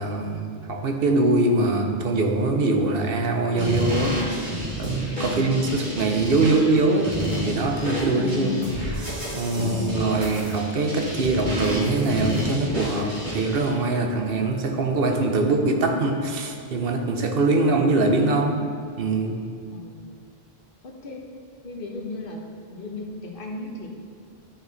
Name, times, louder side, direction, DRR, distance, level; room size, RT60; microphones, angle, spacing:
voice 1, 0.0-8.5 9.3-18.7 19.0-19.4, right 2 dB, 65° right, 3 dB, 1.0 m, -23 dB
sound 1, 3.6-13.7, equal, 50° right, 2.0 m, -30 dB
voice 2, 5.2-5.7 8.2-9.0 9.6-10.1 17.5-17.9 19.7-20.2 20.8-21.3 21.6-23.9, left 3 dB, 60° left, 0 dB, 1.2 m, -35 dB
11.0 x 4.6 x 4.1 m, 2.1 s
omnidirectional pair, 1.0 m